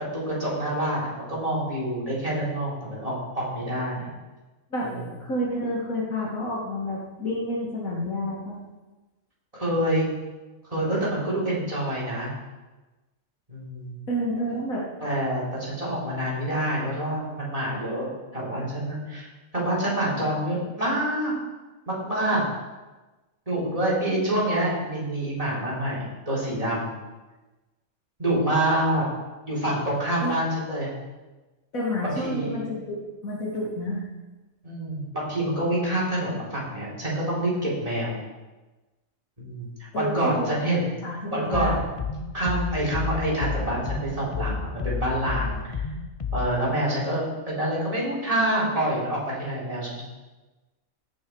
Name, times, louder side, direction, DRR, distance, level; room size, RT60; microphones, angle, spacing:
voice 1, 0.1-4.1 4.8-5.0 9.5-10.1 10.7-12.3 13.5-14.0 15.0-21.3 21.9-22.4 23.5-27.0 28.2-29.0 29.5-30.9 32.0-32.7 34.6-38.2 39.4-40.9 41.3-41.8 42.3-45.8 46.3-50.0, right 1 dB, 25° right, -6 dB, 3.8 m, -27 dB
voice 2, 5.2-8.6 14.1-14.8 20.2-20.3 30.2-30.4 31.7-33.0 33.2-34.0 39.9-40.6 41.0-41.8, equal, 75° left, -4 dB, 2.3 m, -29 dB
sound 1, 41.5-46.5, left 5 dB, 50° left, 0.4 m, -31 dB
16.5 x 6.2 x 4.6 m, 1.2 s
omnidirectional pair, 1.4 m